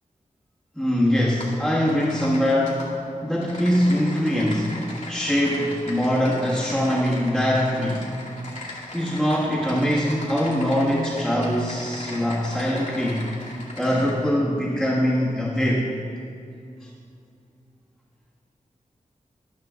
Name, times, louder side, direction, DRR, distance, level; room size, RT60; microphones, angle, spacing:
voice 1, 0.7-2.9 3.2-4.8 5.1-8.1 8.9-13.3 13.7-15.9, equal, ahead, -9 dB, 1.4 m, -22 dB
Typing, 1.4-1.6 1.9-2.9 3.3-14.1, left 2 dB, 70° left, 2.2 m, -39 dB
13.0 x 5.8 x 3.6 m, 2.4 s
wide cardioid pair, 70°, 13 cm